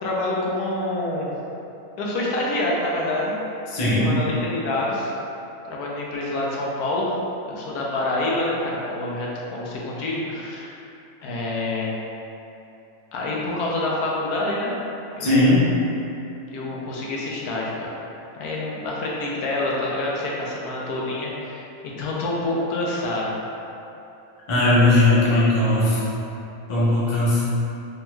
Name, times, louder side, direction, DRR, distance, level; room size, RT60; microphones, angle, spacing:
voice 1, 0.0-1.3 2.0-3.4 3.9-5.1 5.7-7.1 7.5-10.8 11.2-11.9 13.1-14.8 15.1-15.6 16.5-17.9 18.3-23.3, left 2 dB, 85° left, -4 dB, 1.1 m, -27 dB
voice 2, 3.7-4.1 15.2-15.7 24.5-26.0 26.7-27.4, left 1 dB, 40° left, -9 dB, 0.4 m, -18 dB
3.4 x 2.2 x 3.0 m, 2.9 s
omnidirectional pair, 1.6 m